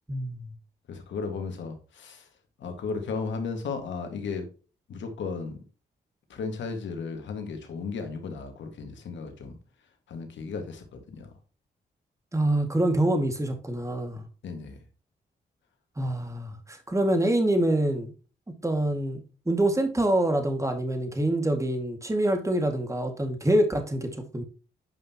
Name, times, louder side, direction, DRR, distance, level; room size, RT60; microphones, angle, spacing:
voice 1, 0.1-0.5 12.3-14.2 16.0-18.1 18.6-19.2 19.5-24.4, right 1 dB, 15° right, 2.0 m, -25 dB
voice 2, 0.9-2.3 2.6-4.5 4.9-5.6 6.3-9.6 10.1-11.3 14.4-14.8, left 4 dB, 80° left, 1.9 m, -35 dB
9.4 x 5.4 x 2.9 m
supercardioid pair, 45°, 19 cm